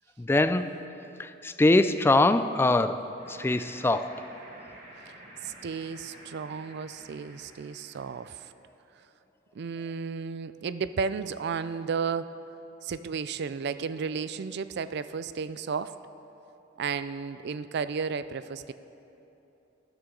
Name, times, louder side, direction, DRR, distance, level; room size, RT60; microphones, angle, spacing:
voice 1, 0.2-0.8 1.2-4.2, left 2 dB, 10° left, 11 dB, 0.3 m, -23 dB
sound 1, 3.1-8.5, right 1 dB, 40° right, 2.0 m, -50 dB
voice 2, 5.4-8.4 9.6-12.3 12.8-16.0 16.8-18.7, right 5 dB, 60° right, 14 dB, 0.4 m, -33 dB
12.5 x 12.5 x 3.8 m, 3.0 s
head